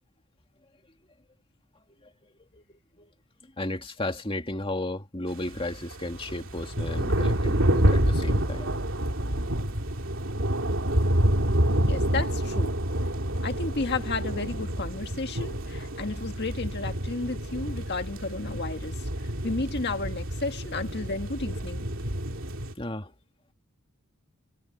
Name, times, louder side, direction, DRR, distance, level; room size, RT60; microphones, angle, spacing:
voice 1, 3.6-8.7 22.8-23.1, left 1 dB, 25° left, 2.3 m, -34 dB
sound 1, 5.3-22.7, right 1 dB, 60° right, 3.2 m, -28 dB
voice 2, 11.8-12.8 13.4-19.1 19.4-21.8, left 3 dB, 50° left, 1.8 m, -32 dB
head